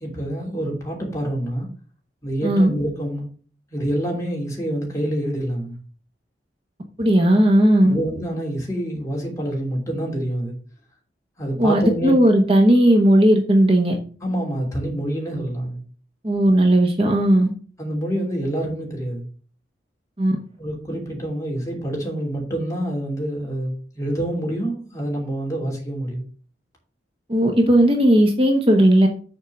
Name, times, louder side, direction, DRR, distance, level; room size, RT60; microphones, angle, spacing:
voice 1, 0.0-1.7 2.2-3.3 3.7-5.8 7.9-10.5 11.4-12.2 14.2-15.8 17.8-19.3 20.6-26.2, right 1 dB, 15° left, 2.8 m, -27 dB
voice 2, 7.0-7.9 11.6-14.0 16.2-17.5 20.2-20.4 27.3-29.1, right 1 dB, 30° right, 1.0 m, -16 dB
6.9 x 4.6 x 6.3 m
head